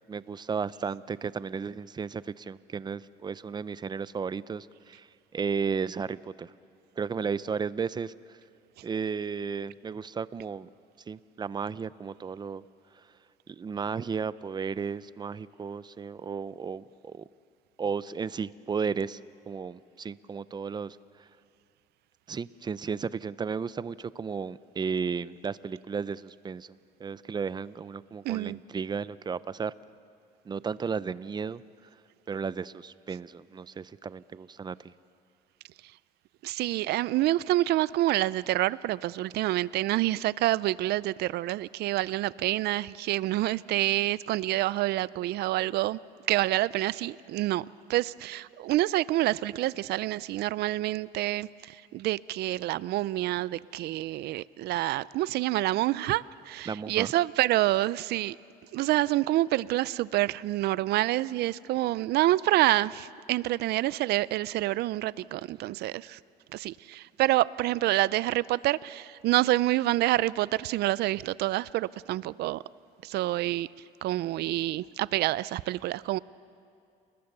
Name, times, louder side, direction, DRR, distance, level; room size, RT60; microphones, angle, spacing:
voice 1, 0.1-5.1 5.3-6.5 7.0-8.1 8.8-10.7 11.1-12.6 13.5-17.2 17.8-19.2 19.5-21.0 22.3-29.7 30.5-31.6 32.3-34.9 56.7-57.1, right 6 dB, 25° right, 17 dB, 0.6 m, -34 dB
voice 2, 28.2-28.6 36.4-46.0 46.3-47.6 47.9-58.4 58.7-66.2 66.5-72.6 73.0-73.7 74.0-76.2, right 16 dB, 75° right, 20 dB, 0.5 m, -27 dB
29.5 x 20.5 x 6.8 m, 2.5 s
cardioid pair, 110°, 17 cm